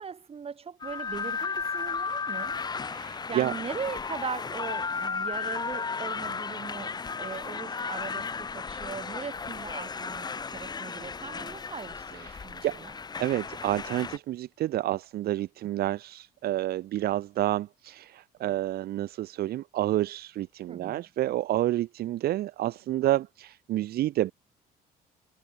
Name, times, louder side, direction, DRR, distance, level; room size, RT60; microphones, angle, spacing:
voice 1, 0.0-2.6 3.3-12.9 20.7-21.1, right 6 dB, 35° right, 7.2 m, -39 dB
sound 1, 0.8-14.2, left 5 dB, 25° left, 1.0 m, -34 dB
voice 2, 2.9-3.5 12.2-12.8 13.2-24.3, right 14 dB, 65° right, 1.1 m, -29 dB
cardioid pair, 110°, 17 cm